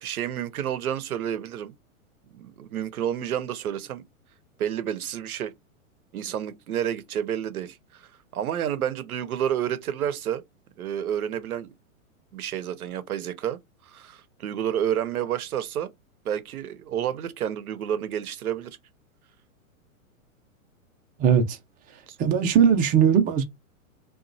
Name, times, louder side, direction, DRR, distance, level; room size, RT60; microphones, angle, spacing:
voice 1, 0.0-1.7 2.3-4.0 4.6-5.5 6.1-10.4 10.8-11.7 12.3-15.9 16.2-18.8 22.1-22.2, right 10 dB, 85° right, 0.7 m, -30 dB
voice 2, 22.2-23.4, right 7 dB, 20° right, 0.5 m, -19 dB
2.8 x 2.3 x 2.6 m
hypercardioid pair, 115°, 42 cm